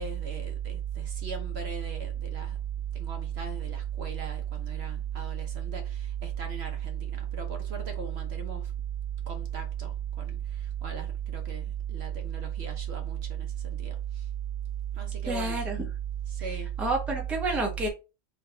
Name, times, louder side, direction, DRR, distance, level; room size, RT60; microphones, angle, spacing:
voice 1, 0.0-2.6 3.0-8.7 9.3-14.2 14.9-15.6 16.3-16.7, right 9 dB, 60° right, 0.9 m, -33 dB
voice 2, 15.2-15.9 16.4-17.9, right 2 dB, ahead, 0.7 m, -30 dB
3.6 x 3.1 x 3.2 m
omnidirectional pair, 1.3 m